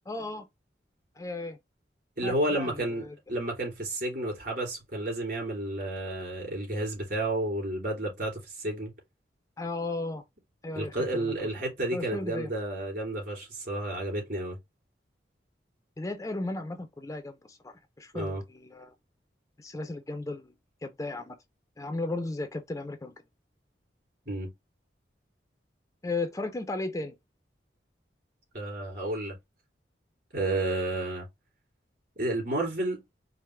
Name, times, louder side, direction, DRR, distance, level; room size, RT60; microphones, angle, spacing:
voice 1, 0.1-0.5 1.2-1.6 2.2-3.2 9.6-10.2 10.6-11.6 11.9-12.5 16.0-18.9 19.6-20.5 20.8-21.4 21.8-23.1 26.0-27.2, left 2 dB, 20° left, 0.4 m, -35 dB
voice 2, 2.2-8.9 10.7-14.6 18.1-18.4 24.3-24.5 28.5-29.4 30.3-31.3 32.2-33.0, right 1 dB, 55° right, 2.8 m, -31 dB
4.7 x 2.0 x 3.1 m
head